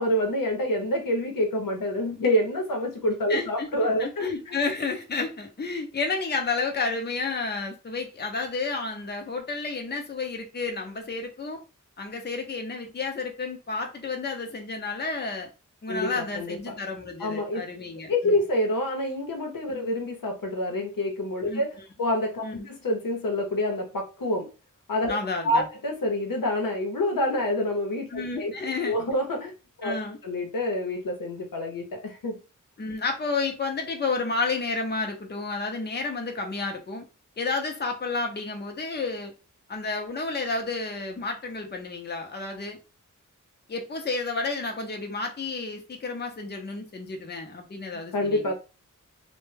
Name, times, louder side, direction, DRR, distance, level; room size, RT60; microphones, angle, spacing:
voice 1, 0.0-4.5 15.9-16.8 17.2-17.6 18.1-24.5 24.9-25.2 25.4-28.5 28.8-29.5 29.8-29.9 30.2-32.4 47.9-48.5, left 1 dB, 90° left, 0.7 m, -27 dB
voice 2, 3.3-3.7 4.0-11.6 12.0-15.5 15.8-18.4 19.7-19.9 21.5-21.6 22.4-22.7 25.1-25.7 28.1-29.0 29.8-30.2 32.8-37.1 37.4-39.3 39.7-42.8 43.7-48.5, left 3 dB, 30° left, 0.6 m, -31 dB
2.1 x 2.1 x 3.2 m
wide cardioid pair, 90°, 32 cm